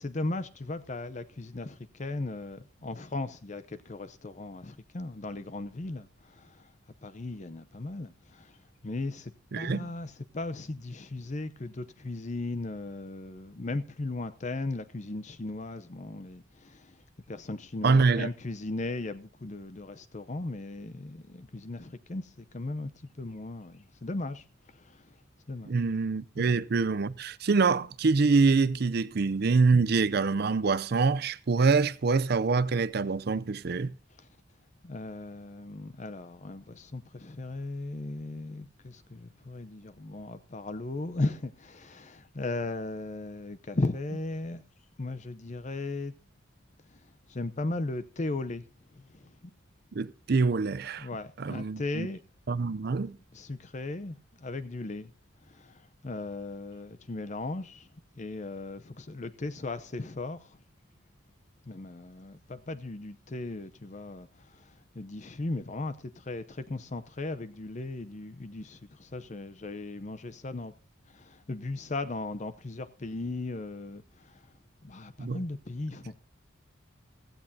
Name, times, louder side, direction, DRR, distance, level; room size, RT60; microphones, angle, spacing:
voice 1, 0.0-6.7 7.0-17.0 17.3-22.9 23.2-24.4 24.7-25.1 25.5-25.8 26.4-26.6 34.2-34.3 34.8-44.6 45.0-46.1 46.9-47.0 47.3-48.6 48.9-49.5 51.0-52.2 53.1-55.1 55.5-57.9 58.2-60.6 61.6-70.7 71.1-74.5 74.8-76.1, left 2 dB, 35° left, 0.6 m, -37 dB
voice 2, 9.5-9.9 17.8-18.3 25.7-33.9 49.9-51.1 51.4-52.1 52.5-53.2 75.2-75.4, right 4 dB, 50° right, 0.5 m, -25 dB
16.0 x 14.5 x 2.7 m
head